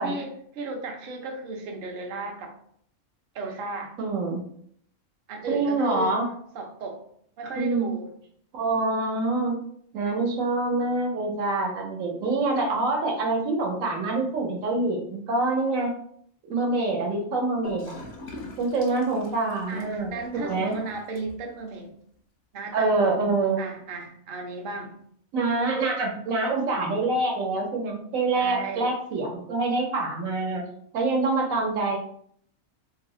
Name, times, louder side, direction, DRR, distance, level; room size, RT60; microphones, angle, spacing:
voice 1, 0.0-2.5 3.3-3.9 5.3-6.2 6.5-7.0 7.4-8.1 19.7-21.9 22.5-22.9 23.6-24.9 28.4-28.9, right 3 dB, 55° right, 2 dB, 0.6 m, -34 dB
voice 2, 4.0-4.4 5.5-6.3 7.6-7.9 8.5-9.6 9.9-15.9 16.4-18.0 18.6-20.1 20.4-20.7 22.7-23.6 25.3-30.6 30.9-32.0, right 3 dB, 80° right, 1 dB, 1.1 m, -25 dB
Gurgling / Toilet flush, 17.6-21.6, left 2 dB, 85° left, 1.1 m, -43 dB
3.1 x 2.0 x 3.6 m, 0.65 s
omnidirectional pair, 1.4 m